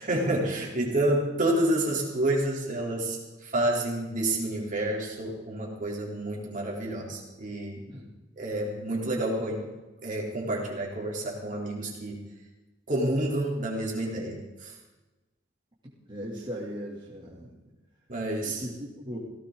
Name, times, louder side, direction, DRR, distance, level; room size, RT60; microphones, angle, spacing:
voice 1, 0.0-7.8 8.4-9.7 10.0-12.2 12.9-14.7 18.1-18.6, right 1 dB, 40° right, -2 dB, 4.0 m, -29 dB
voice 2, 16.1-17.7 18.4-19.2, equal, 25° right, -6 dB, 3.3 m, -38 dB
17.5 x 17.0 x 4.1 m, 1.1 s
head